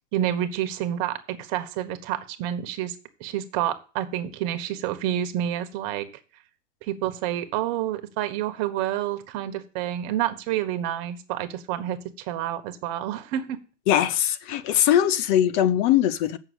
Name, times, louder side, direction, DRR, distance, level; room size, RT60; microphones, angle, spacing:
voice 1, 0.1-2.9 3.2-6.1 6.8-13.6, right 11 dB, 40° right, 1.5 m, -29 dB
voice 2, 13.9-16.4, left 11 dB, 40° left, 0.8 m, -21 dB
7.9 x 6.5 x 7.9 m
supercardioid pair, 140°, 37 cm